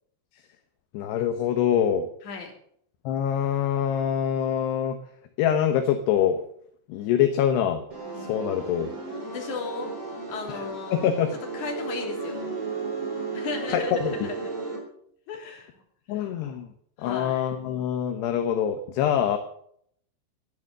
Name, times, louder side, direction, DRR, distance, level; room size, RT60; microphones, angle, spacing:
voice 1, 0.9-2.1 3.1-5.0 5.4-6.4 6.9-7.8 8.3-8.9 10.9-11.3 13.7-14.3 16.1-16.7 17.0-19.4, left 9 dB, 70° left, 6 dB, 2.8 m, -24 dB
sound 1, 7.9-14.8, right 4 dB, 25° right, 4.3 m, -34 dB
voice 2, 9.2-10.0 10.3-11.2 11.5-12.5 13.3-14.5 15.3-15.8 16.1-16.3 17.0-17.5, left 4 dB, 45° left, 1 dB, 4.0 m, -36 dB
14.0 x 11.0 x 6.6 m, 0.66 s
omnidirectional pair, 5.6 m